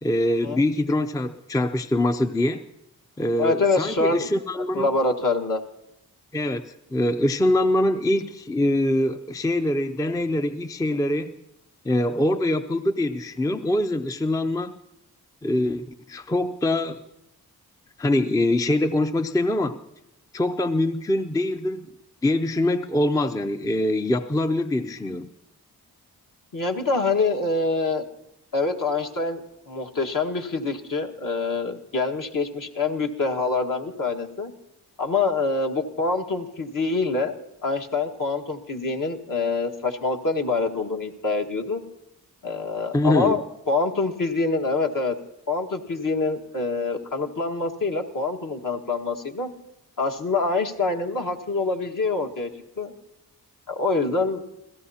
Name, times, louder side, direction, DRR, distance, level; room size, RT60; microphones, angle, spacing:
voice 1, 0.0-2.7 3.2-4.9 6.3-11.4 11.8-14.7 15.4-17.0 18.0-19.8 20.3-21.9 22.2-25.3 42.9-43.4, left 1 dB, 10° left, 10 dB, 0.5 m, -24 dB
voice 2, 3.4-5.6 26.5-28.0 28.5-34.5 35.0-37.4 37.6-41.8 42.4-43.4 43.7-45.1 45.5-49.5 50.0-52.5 52.8-52.9 53.7-54.4, left 3 dB, 55° left, 3 dB, 1.7 m, -25 dB
27.5 x 16.5 x 2.8 m, 0.84 s
cardioid pair, 70°, 38 cm